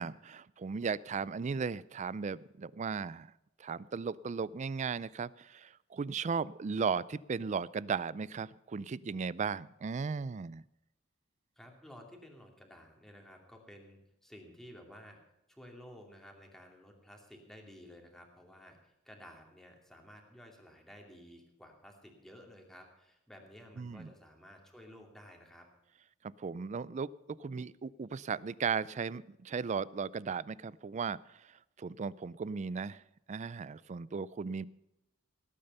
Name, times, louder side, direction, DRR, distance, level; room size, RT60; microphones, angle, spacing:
voice 1, 0.0-3.3 3.6-10.6 23.8-24.1 26.2-33.0 33.3-34.6, right 5 dB, 35° right, 20 dB, 0.4 m, -36 dB
voice 2, 11.6-15.2 15.5-25.7, equal, ahead, 1 dB, 2.5 m, -54 dB
18.5 x 8.8 x 5.5 m, 0.87 s
head